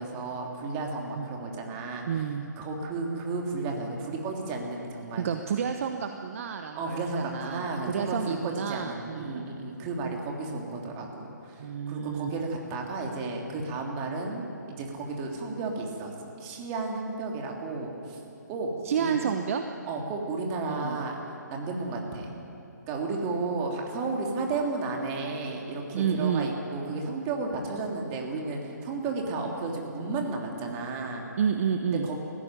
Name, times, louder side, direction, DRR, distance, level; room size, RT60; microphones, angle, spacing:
voice 1, 0.0-2.2 2.6-5.3 6.8-18.2 18.5-18.7 19.0-19.2 19.9-21.2 21.5-22.3 22.9-31.2 31.9-32.2, right 3 dB, 25° right, 0 dB, 3.1 m, -33 dB
voice 2, 2.1-2.4 5.2-9.5 11.6-12.3 18.8-19.6 20.6-21.0 25.9-26.5 31.4-32.1, right 7 dB, 45° right, 6 dB, 1.1 m, -30 dB
20.5 x 15.5 x 9.2 m, 2.9 s
figure-of-eight pair, 140°, 10 cm